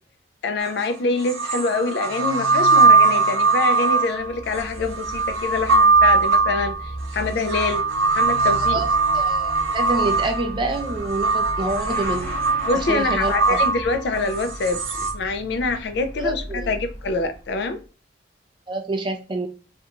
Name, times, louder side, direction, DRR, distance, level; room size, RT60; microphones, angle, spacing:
voice 1, 0.4-7.8 8.2-8.8 12.6-17.8, left 3 dB, 60° left, 0.3 m, -25 dB
sound 1, 0.6-0.7 1.2-15.1, right 4 dB, 90° right, 0.5 m, -20 dB
Motorcycle / Accelerating revving vroom, 4.0-17.8, equal, 10° left, 0.7 m, -36 dB
voice 2, 9.1-12.3 12.9-13.6 16.2-16.8 18.7-19.5, right 2 dB, 25° right, 0.3 m, -27 dB
2.4 x 2.2 x 2.8 m
head